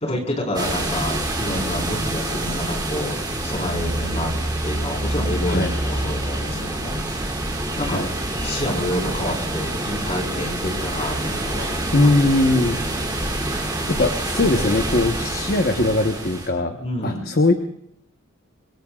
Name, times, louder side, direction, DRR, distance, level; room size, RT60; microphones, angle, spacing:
voice 1, 0.0-4.3 4.6-7.0 7.8-8.1 8.4-12.2 16.8-17.2, left 1 dB, 30° left, -1 dB, 4.5 m, -28 dB
sound 1, 0.5-16.5, right 1 dB, 20° right, 2.9 m, -26 dB
voice 2, 11.9-12.8 13.9-17.5, left 2 dB, 50° left, 5 dB, 1.1 m, -20 dB
26.0 x 23.0 x 2.4 m, 0.73 s
head